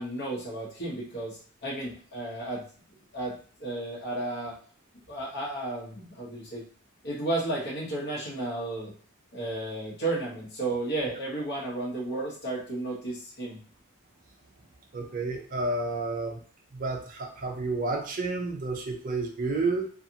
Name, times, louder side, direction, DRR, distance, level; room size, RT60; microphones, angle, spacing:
voice 1, 0.0-2.6 3.1-4.5 5.1-6.6 7.0-8.9 9.3-13.6, right 2 dB, 55° left, -5 dB, 0.9 m, -33 dB
voice 2, 14.9-16.4 16.7-19.9, right 3 dB, 40° right, 2 dB, 0.5 m, -30 dB
2.5 x 2.4 x 2.8 m, 0.44 s
head